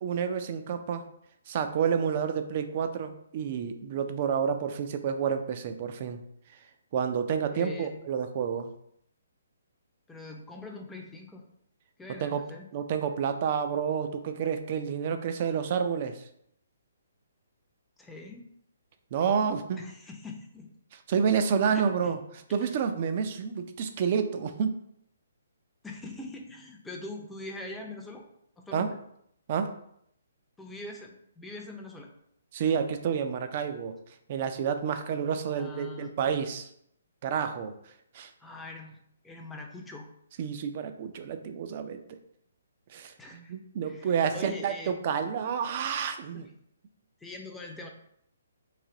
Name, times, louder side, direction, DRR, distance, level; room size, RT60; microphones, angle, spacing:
voice 1, 0.0-1.1 1.5-6.2 6.9-8.7 12.2-12.4 12.7-16.2 19.1-19.8 21.1-22.2 22.5-24.7 28.7-28.9 29.5-29.7 32.5-33.9 34.3-36.7 37.2-37.7 38.1-38.3 40.4-42.0 42.9-46.5, right 7 dB, 40° right, 8 dB, 0.4 m, -29 dB
voice 2, 7.5-8.0 10.1-11.4 12.0-12.7 18.0-18.5 19.7-20.7 21.7-22.2 22.6-22.8 25.8-28.3 28.6-29.0 30.6-32.1 35.6-36.1 38.4-39.0 39.2-40.1 43.2-43.5 43.8-45.0 46.3-46.5 47.2-47.9, left 2 dB, 5° left, 1 dB, 0.5 m, -43 dB
3.3 x 2.6 x 3.8 m, 0.71 s
hypercardioid pair, 145°, 0 cm